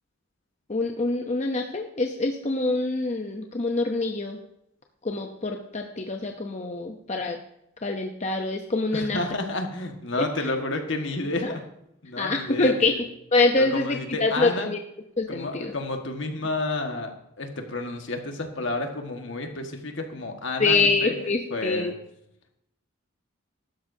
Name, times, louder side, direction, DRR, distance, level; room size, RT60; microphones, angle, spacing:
voice 1, 0.7-4.4 5.0-7.4 7.8-9.2 11.4-11.5 12.2-13.0 13.3-14.8 15.2-15.7 20.6-21.9, left 3 dB, 35° left, 3 dB, 0.7 m, -25 dB
voice 2, 8.9-11.6 12.0-13.0 13.6-14.7 15.3-21.9, left 2 dB, 65° left, 4 dB, 1.6 m, -30 dB
15.0 x 12.5 x 2.7 m, 0.82 s
head